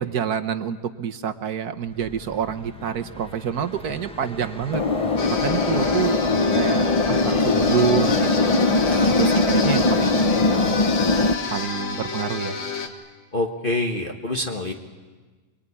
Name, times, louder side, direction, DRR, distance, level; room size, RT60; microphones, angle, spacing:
voice 1, 0.0-4.8 5.3-6.2 6.5-8.6 9.2-11.0 11.5-12.6, right 8 dB, 60° right, 8 dB, 1.4 m, -27 dB
Car passing by, 1.8-12.4, equal, 5° left, 1.3 m, -40 dB
sound 1, 4.7-11.3, left 3 dB, 60° left, 0.3 m, -21 dB
sound 2, 5.2-12.9, left 5 dB, 75° left, 2.6 m, -29 dB
voice 2, 8.8-9.2 13.3-14.7, left 1 dB, 30° left, 1 dB, 1.4 m, -26 dB
24.5 x 23.0 x 9.9 m, 1.4 s
omnidirectional pair, 2.1 m